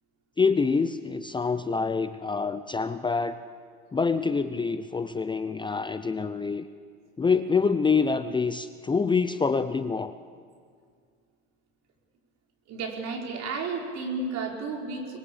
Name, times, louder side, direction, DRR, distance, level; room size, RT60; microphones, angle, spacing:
voice 1, 0.4-3.4 3.9-6.7 7.2-10.1, left 5 dB, 15° left, 11 dB, 0.7 m, -26 dB
voice 2, 12.7-15.2, right 4 dB, 50° right, 1 dB, 5.1 m, -32 dB
24.0 x 21.5 x 8.6 m, 2.1 s
hypercardioid pair, 90°, 34 cm